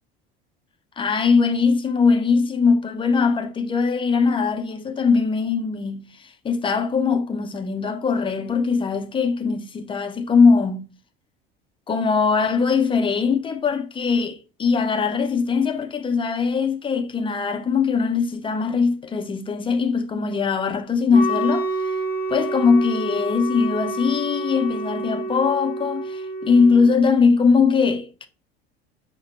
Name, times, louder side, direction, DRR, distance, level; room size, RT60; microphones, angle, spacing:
voice 1, 1.0-10.9 11.9-21.9 22.3-28.3, left 5 dB, 15° left, 0.5 m, -21 dB
Wind instrument woodwind instrument, 21.1-27.0, right 1 dB, 25° right, 1.6 m, -28 dB
5.5 x 2.1 x 2.9 m
figure-of-eight pair, 65°, 31 cm